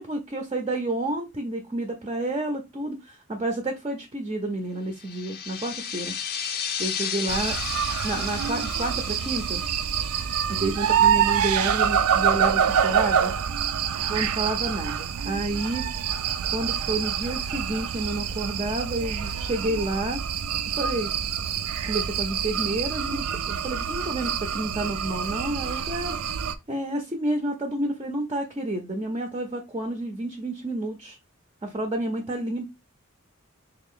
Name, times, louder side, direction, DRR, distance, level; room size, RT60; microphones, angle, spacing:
voice 1, 0.0-6.1 6.8-7.6 8.0-9.6 10.5-13.3 14.1-15.9 16.5-20.2 20.8-21.1 21.8-26.2 26.7-31.2 31.6-32.7, right 2 dB, 25° right, 0.5 m, -30 dB
sound 1, 5.0-11.3, left 8 dB, 45° left, 0.5 m, -34 dB
sound 2, 7.3-26.6, right 8 dB, 80° right, 0.4 m, -26 dB
3.3 x 2.4 x 3.6 m
head